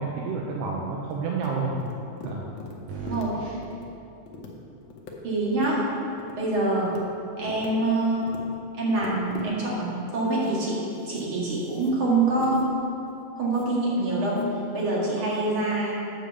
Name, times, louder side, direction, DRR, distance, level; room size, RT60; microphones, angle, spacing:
voice 1, 0.0-1.7 2.2-2.5 2.9-3.2, right 4 dB, 75° right, -2 dB, 1.5 m, -30 dB
sound 1, 1.1-1.5 1.8-2.7 3.1-3.3 3.6-3.9 4.2-4.5 4.8-5.1 5.4-5.7 6.0-6.3 6.7-7.0 7.4-7.7 8.1-8.4 8.8-9.6 10.2-10.6 11.0-12.0 12.4-12.7 13.1-13.2 13.5-13.7 14.4-14.5, left 5 dB, 90° left, 1.0 m, -42 dB
voice 2, 3.0-3.6 5.2-5.9 6.4-7.0 7.4-8.2 8.8-12.7 13.4-14.5 14.7-15.9, right 2 dB, 45° right, -6 dB, 2.4 m, -25 dB
7.7 x 5.0 x 6.8 m, 2.8 s
omnidirectional pair, 3.4 m